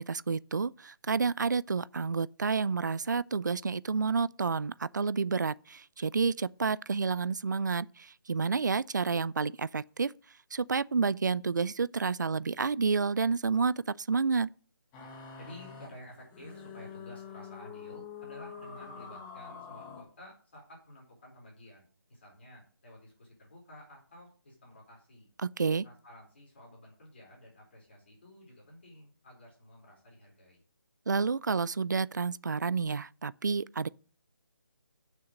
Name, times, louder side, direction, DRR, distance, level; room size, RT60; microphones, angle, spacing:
voice 1, 0.0-7.9 8.3-10.1 10.5-14.5 25.4-25.8 31.1-33.9, right 5 dB, 50° right, 0.4 m, -30 dB
sound 1, 14.9-20.0, left 6 dB, 10° left, 1.4 m, -46 dB
voice 2, 15.3-25.3 25.8-30.6, left 1 dB, 30° left, 4.5 m, -52 dB
7.2 x 6.4 x 7.5 m
figure-of-eight pair, 175°, 12 cm